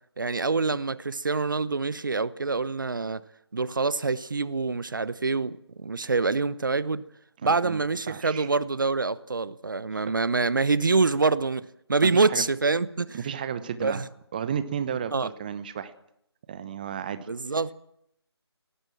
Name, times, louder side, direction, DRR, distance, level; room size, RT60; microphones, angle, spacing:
voice 1, 0.2-3.2 3.5-7.1 7.4-13.2 13.8-14.1 15.1-15.3 17.3-17.7, right 4 dB, 50° right, 0.9 m, -26 dB
voice 2, 7.4-7.8 8.1-8.5 12.0-12.4 13.1-14.0 14.3-15.9 16.5-17.3, right 8 dB, 20° right, 1.0 m, -33 dB
23.0 x 18.5 x 7.5 m
figure-of-eight pair, 155°, 14 cm